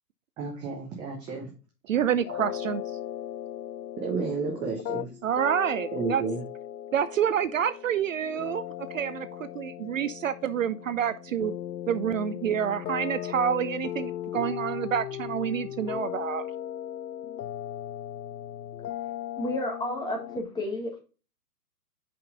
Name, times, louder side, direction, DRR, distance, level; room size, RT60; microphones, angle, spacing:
voice 1, 0.4-1.5 4.0-5.1 5.9-6.4, right 4 dB, 10° right, 0.5 m, -32 dB
voice 2, 1.9-2.8 5.2-6.2 6.9-8.6 8.9-11.5 11.9-16.5, right 9 dB, 55° right, 0.5 m, -28 dB
sound 1, 2.2-20.4, left 11 dB, 85° left, 0.6 m, -37 dB
voice 3, 19.4-21.0, left 1 dB, 10° left, 1.5 m, -31 dB
6.7 x 5.1 x 3.8 m
hypercardioid pair, 130°, 49 cm